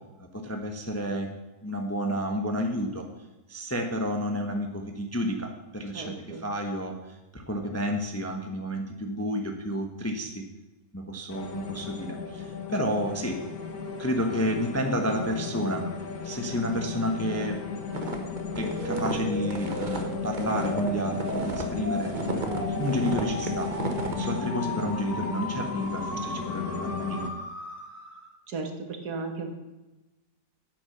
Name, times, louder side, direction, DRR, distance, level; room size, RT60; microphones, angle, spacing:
voice 1, 0.2-1.3 1.6-3.1 3.5-10.4 10.9-13.4 14.0-15.9 16.2-17.6 18.0-18.1 18.6-22.1 22.7-23.7 24.1-27.2, equal, 10° left, 3 dB, 0.7 m, -30 dB
voice 2, 5.9-6.4 28.5-29.5, right 3 dB, 70° right, 4 dB, 1.9 m, -35 dB
sound 1, 11.3-27.3, left 5 dB, 60° left, 1.5 m, -35 dB
sound 2, 17.9-21.7 22.0-24.3, right 3 dB, 30° right, 1.2 m, -34 dB
sound 3, 18.5-28.3, equal, 45° left, 4.0 m, -37 dB
9.1 x 8.4 x 6.6 m, 1.0 s
omnidirectional pair, 1.8 m